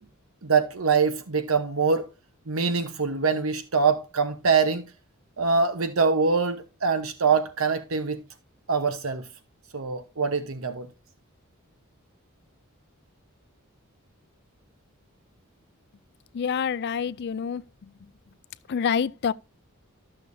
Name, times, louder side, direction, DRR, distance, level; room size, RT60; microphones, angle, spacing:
voice 1, 0.4-2.1 2.5-4.9 5.4-8.2 8.7-9.3 9.7-10.9, right 5 dB, 75° right, 1.0 m, -24 dB
voice 2, 16.3-17.9 18.7-19.3, left 7 dB, 50° left, 0.4 m, -27 dB
13.0 x 6.7 x 2.7 m
head